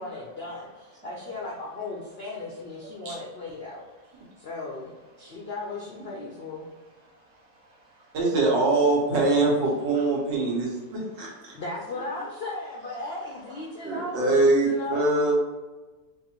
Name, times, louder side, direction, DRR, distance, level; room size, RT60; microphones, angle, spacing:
voice 1, 0.0-3.8 4.4-4.9 5.2-6.7 11.5-15.1, left 2 dB, 75° left, -3 dB, 0.5 m, -36 dB
voice 2, 1.0-1.4 3.0-3.1 8.1-11.5 13.8-15.3, right 2 dB, 90° right, -3 dB, 1.8 m, -23 dB
voice 3, 7.0-8.2 9.9-10.0 11.5-11.6 13.0-13.6, right 1 dB, 35° right, -2 dB, 0.7 m, -52 dB
4.5 x 2.7 x 2.9 m, 1.2 s
omnidirectional pair, 1.9 m